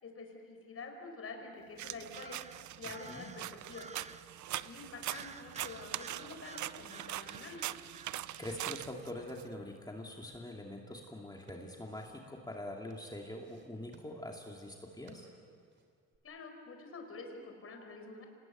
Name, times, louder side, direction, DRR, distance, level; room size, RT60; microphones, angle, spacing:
voice 1, 0.0-2.4 2.8-3.9 4.5-7.6 16.2-18.3, left 3 dB, 50° left, 4 dB, 5.0 m, -47 dB
sound 1, 1.8-9.4, right 14 dB, 70° right, 0.7 m, -42 dB
sound 2, 2.1-4.4 5.1-9.1, right 4 dB, 20° right, 0.8 m, -53 dB
voice 2, 8.4-15.3, left 1 dB, 15° left, 0 dB, 2.5 m, -44 dB
sound 3, 11.2-16.2, right 2 dB, 40° right, 3.7 m, -63 dB
26.0 x 20.5 x 9.2 m, 2.2 s
cardioid pair, 90°, 30 cm